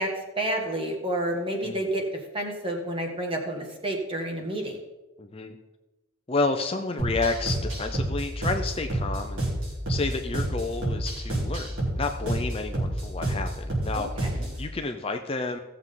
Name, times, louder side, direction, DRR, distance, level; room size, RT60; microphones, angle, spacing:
voice 1, 0.0-4.8 13.9-14.4, right 1 dB, 25° right, 2 dB, 1.7 m, -30 dB
voice 2, 5.2-5.6 6.3-9.5 9.9-15.6, left 3 dB, 25° left, 5 dB, 0.6 m, -30 dB
sound 1, 7.0-14.6, right 1 dB, 60° right, 4.3 m, -29 dB
16.5 x 7.5 x 3.9 m, 1.1 s
head